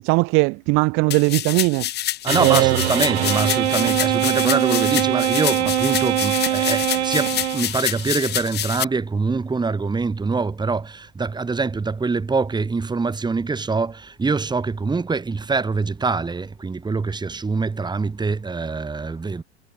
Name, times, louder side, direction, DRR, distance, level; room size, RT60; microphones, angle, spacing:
voice 1, 0.0-1.9 2.4-2.8, right 28 dB, 40° right, 0.7 m, -19 dB
sound 1, 1.1-8.8, left 13 dB, 30° left, 1.2 m, -27 dB
voice 2, 2.2-19.4, right 4 dB, 15° right, 3.7 m, -24 dB
sound 2, 2.3-8.1, right 12 dB, 80° right, 0.5 m, -22 dB
figure-of-eight pair, 90°, 33 cm